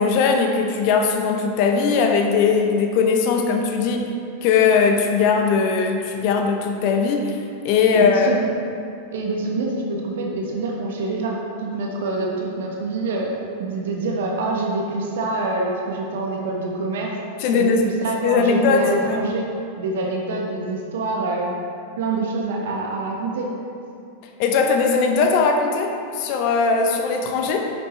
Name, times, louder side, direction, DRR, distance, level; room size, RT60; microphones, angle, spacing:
voice 1, 0.0-4.0 4.4-8.4 17.4-17.8 18.2-19.2 24.4-27.6, left 5 dB, 45° left, 3 dB, 0.8 m, -19 dB
voice 2, 7.9-8.5 9.1-13.3 13.6-17.1 17.5-19.5 19.8-21.5 22.0-23.5, right 3 dB, 60° right, -1 dB, 1.2 m, -26 dB
10.5 x 7.5 x 3.2 m, 2.5 s
figure-of-eight pair, 90°, 0 cm